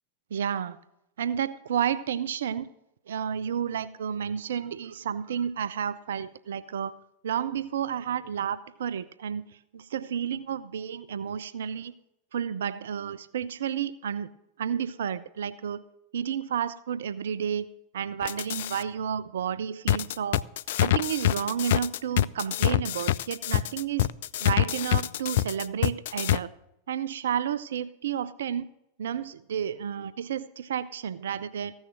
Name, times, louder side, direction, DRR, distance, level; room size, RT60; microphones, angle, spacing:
voice 1, 0.3-0.8 1.2-2.7 3.1-6.9 7.2-9.4 9.7-11.9 12.3-14.3 14.6-15.8 16.1-20.4 20.8-24.1 24.4-26.5 26.9-28.7 29.0-31.7, right 8 dB, 60° right, 16 dB, 0.4 m, -31 dB
sound 1, 18.2-18.8 19.9-26.4, left 13 dB, 55° left, 0.3 m, -25 dB
15.0 x 6.4 x 6.1 m, 0.83 s
figure-of-eight pair, 90°, 0 cm